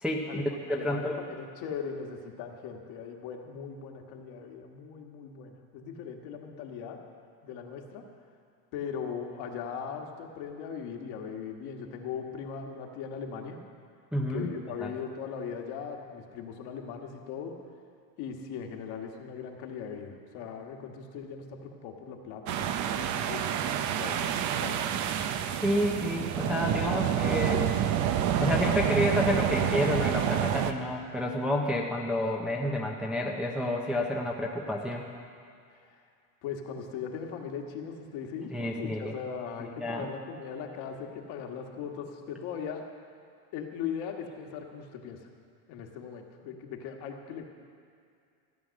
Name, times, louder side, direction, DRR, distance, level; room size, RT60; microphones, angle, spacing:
voice 1, 0.0-0.4 0.7-1.2 14.1-14.5 14.8-14.9 25.6-27.7 28.4-35.1 38.5-39.1 39.6-40.1, left 1 dB, ahead, -1 dB, 0.6 m, -29 dB
voice 2, 0.7-7.0 7.4-8.0 8.7-13.6 14.3-17.5 18.2-23.7 24.0-24.8 35.9-36.0 36.4-42.8 43.5-45.2 45.7-47.4, left 7 dB, 55° left, 2 dB, 1.6 m, -39 dB
sound 1, 22.5-30.7, right 9 dB, 40° right, 0.6 m, -28 dB
14.5 x 9.1 x 6.4 m, 2.3 s
cardioid pair, 150°, 45 cm